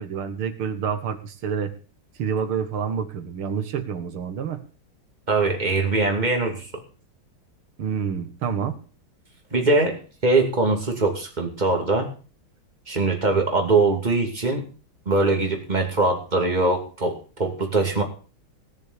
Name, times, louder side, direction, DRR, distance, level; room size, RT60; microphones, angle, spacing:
voice 1, 0.0-1.7 2.2-4.6 7.8-8.8, right 7 dB, 85° right, 9 dB, 2.5 m, -28 dB
voice 2, 5.3-6.7 9.5-12.1 12.9-14.7 15.1-18.0, right 3 dB, 20° right, 3 dB, 2.7 m, -22 dB
18.0 x 7.0 x 6.8 m, 0.38 s
omnidirectional pair, 2.3 m